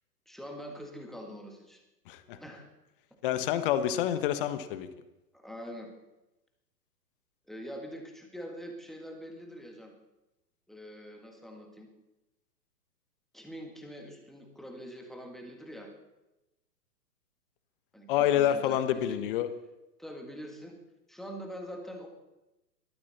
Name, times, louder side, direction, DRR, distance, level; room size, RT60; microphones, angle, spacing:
voice 1, 0.3-1.8 2.3-2.7 5.3-5.9 7.5-9.9 10.7-11.9 13.3-15.9 17.9-19.2 20.0-20.8 21.1-22.1, equal, ahead, 2 dB, 1.7 m, -44 dB
voice 2, 2.1-2.4 3.2-4.9 18.1-19.5, left 11 dB, 35° left, 10 dB, 1.3 m, -27 dB
20.5 x 13.5 x 4.2 m, 0.99 s
figure-of-eight pair, 120°, 47 cm